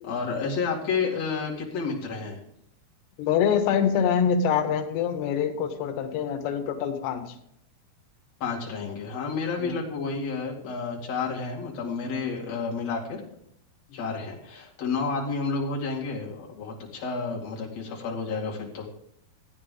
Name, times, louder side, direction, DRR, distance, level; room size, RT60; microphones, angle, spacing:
voice 1, 0.0-2.4 8.4-13.2 13.9-18.9, left 4 dB, 45° left, -3 dB, 3.1 m, -30 dB
voice 2, 3.2-7.4 9.6-9.8, left 7 dB, 90° left, 7 dB, 3.1 m, -25 dB
14.5 x 9.3 x 3.8 m, 0.72 s
omnidirectional pair, 4.7 m